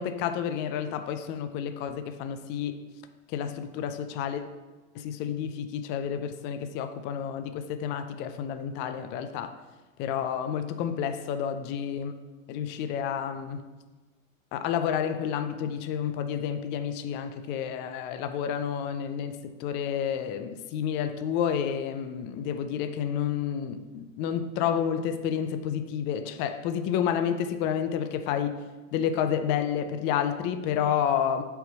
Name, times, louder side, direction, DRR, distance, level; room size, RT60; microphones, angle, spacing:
voice 1, 0.0-2.7 3.3-4.4 4.9-9.5 10.0-12.1 12.5-13.6 14.5-28.5 28.9-31.4, left 8 dB, 30° left, 9 dB, 0.4 m, -30 dB
5.6 x 4.3 x 5.4 m, 1.2 s
hypercardioid pair, 110°, 40 cm